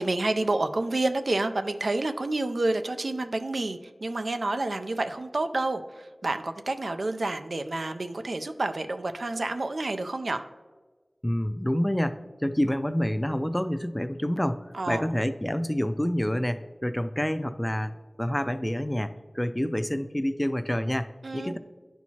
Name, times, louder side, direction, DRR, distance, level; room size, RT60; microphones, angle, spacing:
voice 1, 0.0-10.4 14.7-15.1 21.2-21.6, right 2 dB, 85° right, 8 dB, 0.4 m, -29 dB
voice 2, 11.2-21.6, equal, 15° left, 11 dB, 0.4 m, -28 dB
10.5 x 4.5 x 2.8 m, 1.4 s
wide cardioid pair, 40°, 0 cm